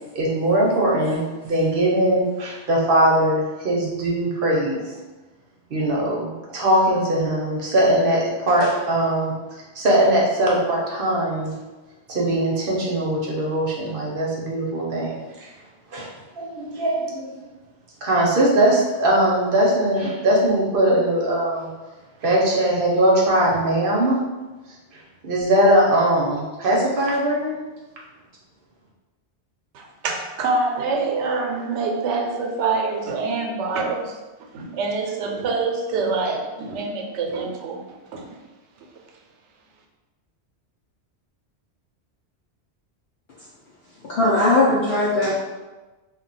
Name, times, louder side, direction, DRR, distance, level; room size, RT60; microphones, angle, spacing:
voice 1, 0.1-4.9 5.7-9.3 9.7-11.5 12.1-15.5 15.9-16.1 16.4-17.3 18.0-21.7 22.2-24.2 25.2-27.5, right 1 dB, 55° right, -4 dB, 0.8 m, -20 dB
voice 2, 29.7-34.2 34.5-37.8 38.1-38.3, right 3 dB, 85° right, 2 dB, 0.9 m, -25 dB
voice 3, 44.0-45.3, left 2 dB, 65° left, -6 dB, 0.8 m, -19 dB
2.3 x 2.2 x 3.9 m, 1.2 s
omnidirectional pair, 1.2 m